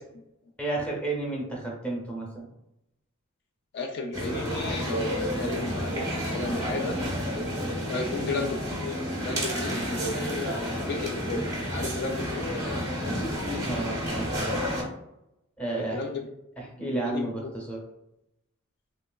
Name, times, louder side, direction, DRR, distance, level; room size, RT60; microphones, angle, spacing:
voice 1, 0.6-2.5 13.7-14.6 15.6-16.0 16.8-17.8, right 2 dB, 5° left, -2 dB, 0.8 m, -32 dB
voice 2, 3.7-7.0 7.9-12.9 15.8-16.3 16.7-17.5, left 2 dB, 50° left, 2 dB, 0.3 m, -34 dB
sound 1, 4.1-14.8, equal, 15° right, 0.9 m, -30 dB
3.1 x 3.0 x 2.2 m, 0.85 s
head